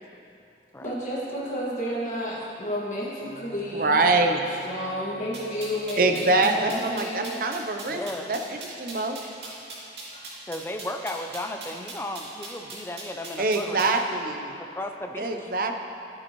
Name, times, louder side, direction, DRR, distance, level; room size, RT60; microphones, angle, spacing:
voice 1, 0.8-4.0 4.4-7.4 9.2-9.5 10.1-10.2 12.9-13.0 14.5-14.6, equal, 40° left, -5 dB, 1.8 m, -32 dB
Bowed string instrument, 3.2-6.9, left 2 dB, 65° left, 1.6 m, -48 dB
voice 2, 3.7-4.4 6.0-8.0 8.3-9.2 13.4-14.6 15.2-15.8, right 3 dB, 50° right, 5 dB, 0.6 m, -24 dB
sound 1, 5.3-14.0, right 3 dB, 75° right, 2.3 m, -40 dB
voice 3, 7.8-8.3 10.5-14.0 14.6-15.5, left 1 dB, 15° left, 5 dB, 0.4 m, -35 dB
12.0 x 8.7 x 3.0 m, 2.7 s
head